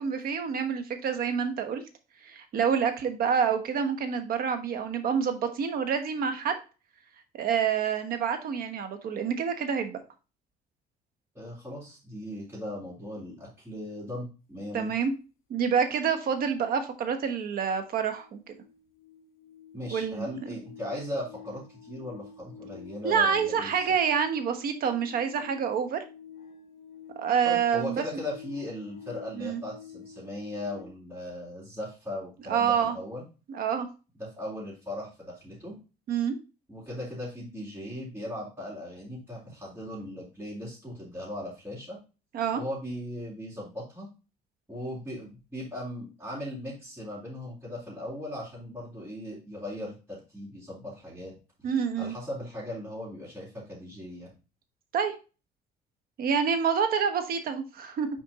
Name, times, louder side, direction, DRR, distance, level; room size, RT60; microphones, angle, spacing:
voice 1, 0.0-1.8 2.2-6.6 7.4-10.0 14.7-15.1 15.5-18.4 19.9-20.5 23.0-26.0 27.2-28.0 29.4-29.6 32.5-32.9 33.5-33.9 36.1-36.4 42.3-42.6 51.6-52.1 54.9-55.1 56.2-58.1, right 7 dB, 60° right, 8 dB, 1.2 m, -27 dB
voice 2, 11.4-14.9 19.7-23.9 27.4-33.2 34.2-35.8 36.7-42.0 42.5-44.1 44.7-51.3 52.0-54.3, left 1 dB, 10° right, -8 dB, 3.6 m, -38 dB
sound 1, 17.3-17.4 17.7-30.9, left 6 dB, 65° left, 1.4 m, -49 dB
6.3 x 4.4 x 4.1 m, 0.32 s
cardioid pair, 110°, 17 cm